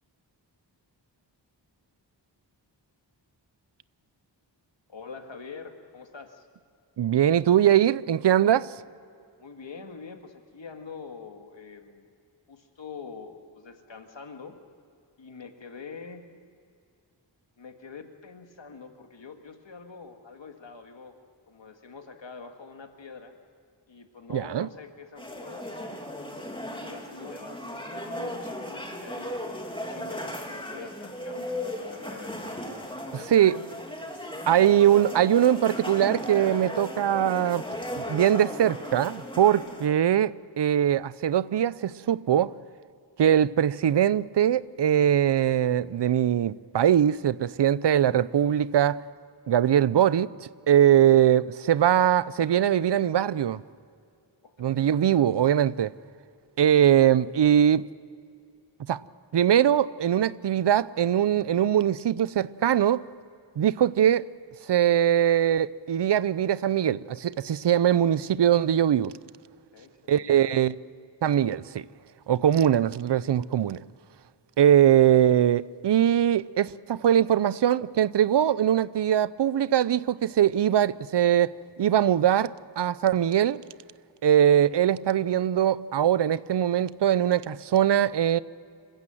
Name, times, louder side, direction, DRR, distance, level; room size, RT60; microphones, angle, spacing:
voice 1, 4.9-6.5 9.4-12.1 12.5-14.5 15.2-16.2 17.6-21.2 21.5-23.3 23.9-25.8 26.7-32.4 33.0-33.6 54.4-55.1 69.7-70.4, left 5 dB, 80° left, 2.0 m, -45 dB
voice 2, 7.0-8.7 24.3-24.7 33.3-33.5 34.5-37.6 37.9-42.5 43.2-49.0 49.5-53.6 54.6-55.9 56.6-57.8 58.9-59.0 59.3-63.0 63.6-64.3 64.7-69.1 70.1-70.7 71.2-71.8 72.3-73.8 74.6-81.5 81.8-83.6 84.2-88.4, right 10 dB, 65° right, 0.6 m, -22 dB
sound 1, 25.2-39.9, left 1 dB, 10° left, 2.8 m, -36 dB
28.0 x 15.5 x 7.8 m
wide cardioid pair, 90°, 44 cm